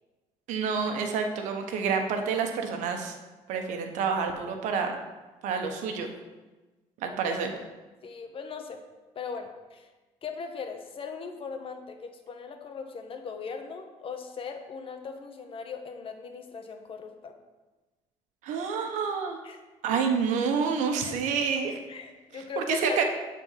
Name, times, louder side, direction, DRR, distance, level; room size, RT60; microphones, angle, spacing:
voice 1, 0.5-3.1 3.5-4.9 5.4-6.1 7.0-7.5 18.4-19.4 19.8-21.8 22.3-23.0, right 6 dB, 80° right, 4 dB, 1.3 m, -28 dB
voice 2, 8.0-8.8 9.1-9.9 10.2-17.3 19.4-19.6 21.0-21.1 21.9-23.0, left 5 dB, 45° left, 5 dB, 1.3 m, -39 dB
12.5 x 4.5 x 5.9 m, 1.2 s
cardioid pair, 95°, 12 cm